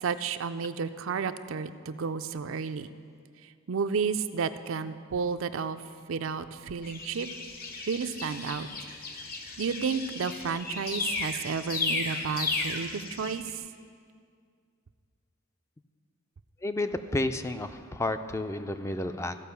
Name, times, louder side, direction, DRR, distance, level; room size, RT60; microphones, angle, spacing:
voice 1, 0.0-2.9 3.4-5.8 6.1-7.3 7.9-8.7 9.6-13.6, right 5 dB, 80° right, 10 dB, 0.4 m, -32 dB
sound 1, 6.8-13.5, left 3 dB, 50° left, 1.1 m, -35 dB
voice 2, 16.6-19.4, left 2 dB, 15° left, 9 dB, 0.3 m, -31 dB
14.5 x 5.2 x 6.9 m, 2.2 s
head